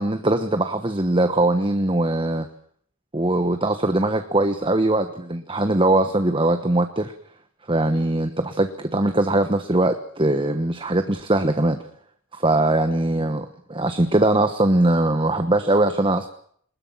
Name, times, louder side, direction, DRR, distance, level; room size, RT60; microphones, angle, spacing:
voice 1, 0.0-2.5 3.1-7.1 7.7-11.8 12.3-16.3, right 2 dB, 25° right, 9 dB, 1.2 m, -21 dB
22.5 x 20.5 x 7.3 m, 0.62 s
head